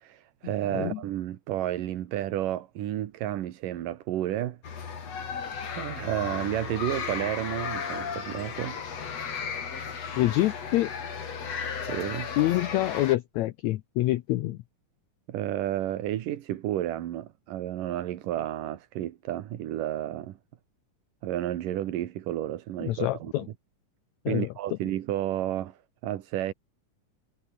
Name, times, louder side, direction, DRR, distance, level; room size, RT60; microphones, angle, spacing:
voice 1, 0.0-4.6 5.8-8.8 11.9-12.3 15.3-20.4 21.2-23.4 24.3-26.5, right 12 dB, 80° right, 3.0 m, -31 dB
sound 1, 4.6-13.2, left 6 dB, 50° left, 4.0 m, -35 dB
voice 2, 10.2-10.9 12.4-14.6 22.9-23.4 24.2-24.5, left 16 dB, 75° left, 1.8 m, -26 dB
omnidirectional pair, 3.8 m